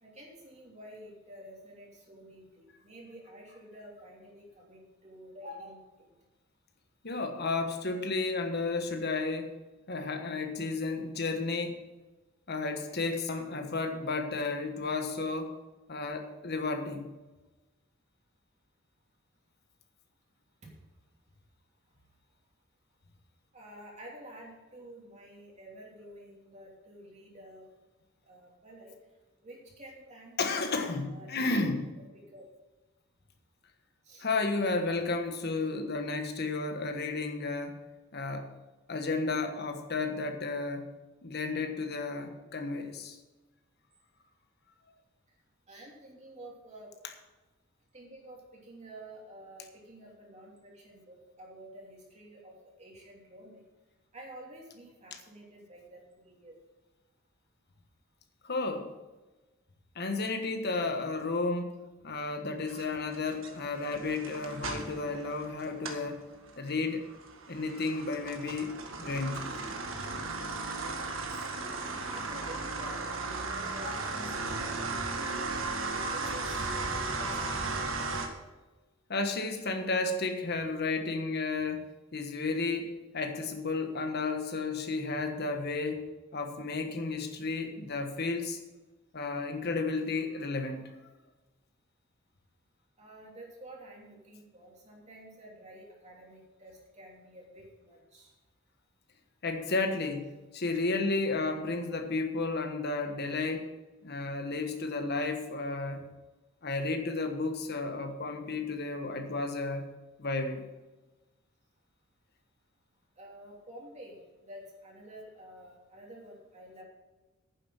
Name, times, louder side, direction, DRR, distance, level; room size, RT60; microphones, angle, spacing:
voice 1, 0.0-6.1 20.6-20.7 23.5-27.7 28.2-28.9 29.4-30.8 31.1-31.3 32.3-32.5 34.0-34.3 45.7-46.9 47.9-53.6 54.1-56.6 71.3-71.5 72.1-75.7 76.1-78.1 93.0-98.3 113.2-116.8, right 1 dB, 35° right, -2 dB, 3.0 m, -50 dB
voice 2, 7.0-9.5 9.9-11.8 12.5-15.5 15.9-17.1 30.4-31.8 34.2-37.8 38.1-38.5 38.9-40.9 41.2-43.2 55.1-55.2 58.4-58.9 59.9-66.2 66.6-67.0 67.5-69.6 79.1-88.6 89.1-90.9 99.4-103.7 104.0-106.1 106.6-109.9 110.2-110.6, left 3 dB, 55° left, 6 dB, 1.4 m, -32 dB
sound 1, 62.7-66.1 66.5-78.3, right 3 dB, 75° right, 1.7 m, -36 dB
9.7 x 7.5 x 7.4 m, 1.2 s
head